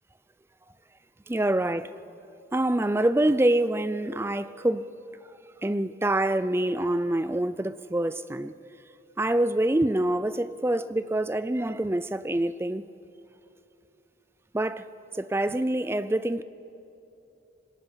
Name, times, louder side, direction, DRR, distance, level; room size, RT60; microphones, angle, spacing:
voice 1, 1.3-1.9 2.5-4.9 5.6-8.5 9.2-12.8 14.5-14.9 15.1-16.4, right 1 dB, 15° right, 0.4 m, -26 dB
26.0 x 21.0 x 5.7 m
head